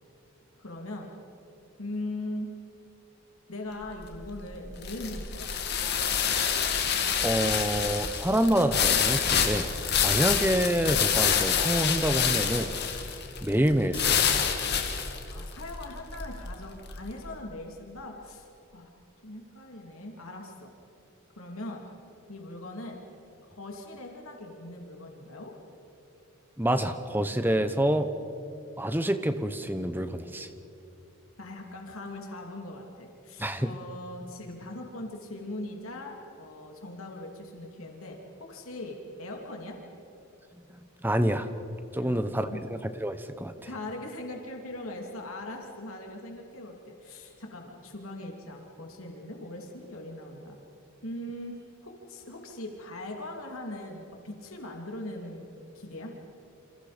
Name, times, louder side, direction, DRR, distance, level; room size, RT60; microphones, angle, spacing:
voice 1, 0.6-1.1 1.8-2.5 3.5-5.5 15.3-18.5 18.7-18.9 19.2-20.7 21.4-21.8 22.3-23.0 23.4-25.5 31.4-39.8 42.0-42.6 43.6-50.6 51.0-56.2, left 1 dB, 75° left, 1 dB, 3.0 m, -40 dB
sound 1, 3.8-17.1, left 7 dB, 50° left, 2.2 m, -27 dB
voice 2, 7.2-9.7 10.0-12.7 13.4-14.2 26.6-28.1 28.8-30.5 33.4-33.7 41.0-41.5 41.9-43.5, right 1 dB, 10° right, 10 dB, 1.0 m, -27 dB
28.5 x 27.0 x 5.2 m, 2.7 s
head